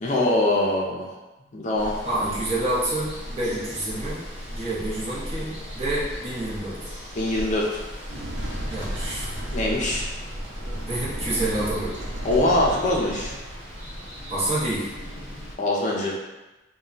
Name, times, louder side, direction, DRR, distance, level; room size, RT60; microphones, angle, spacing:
voice 1, 0.0-1.1 1.5-1.9 2.2-2.3 7.2-7.8 9.5-10.1 12.2-13.3 15.6-16.2, left 1 dB, 40° left, -3 dB, 0.4 m, -23 dB
Water, 1.8-15.5, equal, 65° right, 1.0 m, -37 dB
voice 2, 2.0-4.2 4.5-6.9 8.7-9.3 10.9-11.9 14.3-14.9, right 1 dB, 35° right, -8 dB, 0.8 m, -28 dB
sound 1, 8.1-13.4, equal, 80° right, 0.6 m, -34 dB
2.2 x 2.2 x 3.7 m, 1.1 s
head